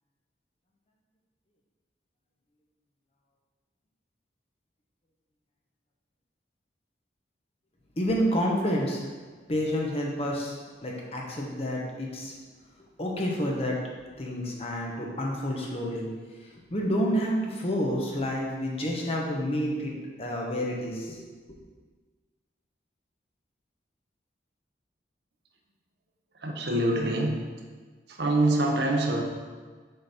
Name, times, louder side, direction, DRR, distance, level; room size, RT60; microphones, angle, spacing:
voice 1, 8.0-9.0 9.5-12.3 13.0-13.8 14.2-16.1 16.7-21.2, equal, 35° left, -1 dB, 0.9 m, -29 dB
voice 2, 26.4-27.4 28.1-29.2, right 1 dB, 65° right, 1 dB, 0.8 m, -25 dB
6.5 x 3.9 x 4.2 m, 1.5 s
head